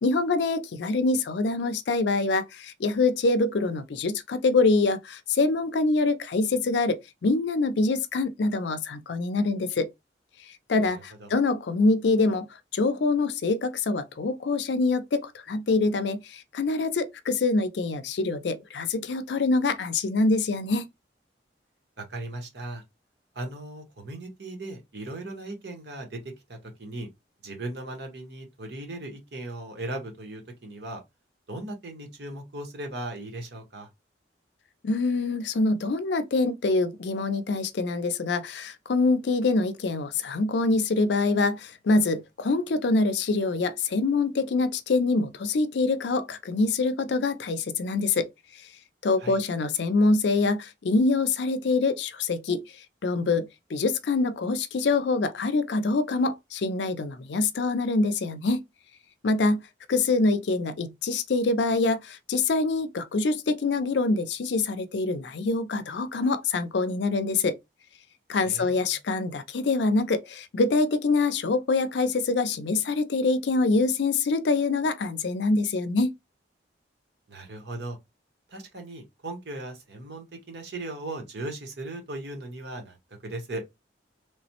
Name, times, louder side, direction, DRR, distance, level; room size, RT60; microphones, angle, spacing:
voice 1, 0.0-9.9 10.7-12.5 12.7-20.9 34.8-48.3 49.0-52.6 53.0-58.6 59.2-59.6 59.9-67.6 68.3-76.1, left 3 dB, 70° left, 0.4 m, -25 dB
voice 2, 22.0-22.8 23.3-27.1 27.4-31.0 31.5-33.9 49.2-49.4 68.4-69.0 77.3-78.0 78.5-83.0 83.2-83.6, right 2 dB, 70° right, 1.0 m, -37 dB
3.2 x 2.0 x 2.8 m
head